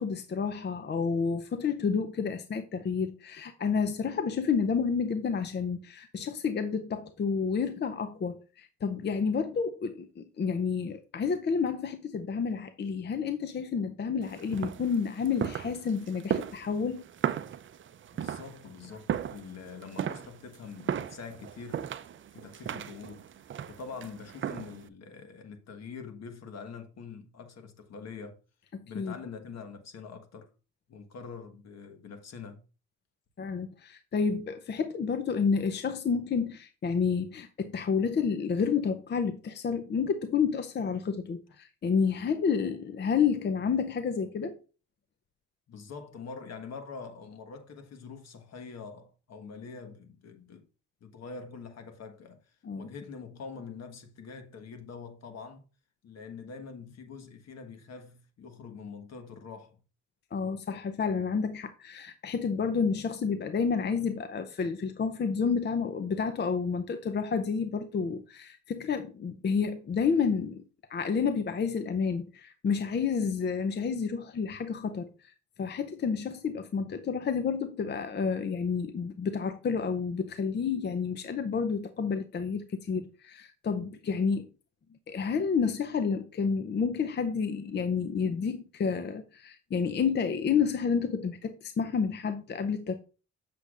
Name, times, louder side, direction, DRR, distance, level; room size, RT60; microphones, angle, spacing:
voice 1, 0.0-17.0 28.7-29.2 33.4-44.6 52.6-52.9 60.3-70.6 70.9-75.3 75.6-84.5 85.1-92.9, left 6 dB, 35° left, 0.6 m, -30 dB
sound 1, 14.2-24.9, right 9 dB, 40° right, 0.5 m, -36 dB
voice 2, 18.1-21.8 22.3-23.2 23.7-28.4 28.8-30.5 30.9-32.6 45.7-50.7 51.0-52.4 52.8-55.7 56.0-59.8, left 5 dB, 60° left, 1.4 m, -44 dB
8.0 x 6.8 x 2.5 m
cardioid pair, 90°, 30 cm